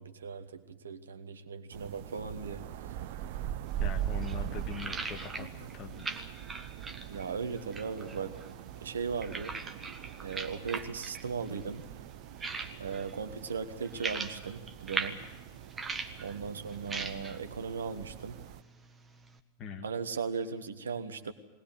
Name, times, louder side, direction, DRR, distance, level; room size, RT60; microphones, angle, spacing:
voice 1, 0.0-3.0 7.1-8.3 8.8-9.5 10.2-11.9 12.8-15.2 16.2-18.4 19.8-21.3, right 5 dB, 70° right, 10 dB, 1.2 m, -37 dB
sound 1, 1.7-18.6, right 11 dB, 50° right, 0.7 m, -42 dB
sound 2, 3.7-19.4, right 4 dB, 15° right, 1.5 m, -42 dB
voice 2, 3.8-6.3 19.6-19.9, left 6 dB, 35° left, 6 dB, 1.9 m, -42 dB
21.0 x 19.0 x 7.8 m, 1.1 s
figure-of-eight pair, 90°, 0 cm